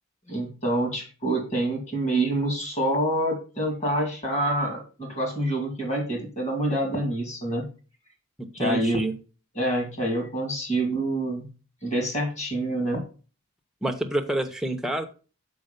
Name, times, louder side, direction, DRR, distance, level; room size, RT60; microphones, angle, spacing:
voice 1, 0.3-7.7 8.5-9.0 9.6-11.5 11.8-13.0, right 1 dB, 30° left, 1 dB, 2.4 m, -27 dB
voice 2, 8.4-9.1 13.8-15.0, right 1 dB, ahead, 3 dB, 0.8 m, -28 dB
6.8 x 4.8 x 5.2 m, 0.35 s
head